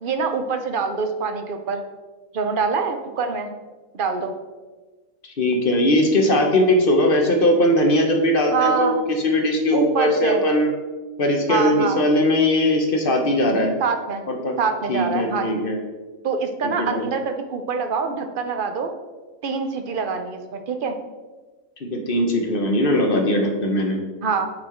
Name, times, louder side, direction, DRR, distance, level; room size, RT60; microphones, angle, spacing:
voice 1, 0.0-1.8 2.3-3.5 3.9-4.3 8.5-9.0 9.7-10.4 11.5-12.0 13.8-14.3 14.6-15.5 16.2-18.9 19.4-21.0 24.2-24.5, right 5 dB, 50° right, 6 dB, 0.7 m, -25 dB
voice 2, 5.2-10.7 11.2-13.7 14.3-14.5 14.9-15.8 16.6-17.1 21.8-24.0, left 1 dB, 45° left, 3 dB, 1.0 m, -20 dB
8.5 x 4.4 x 4.4 m, 1.3 s
omnidirectional pair, 1.4 m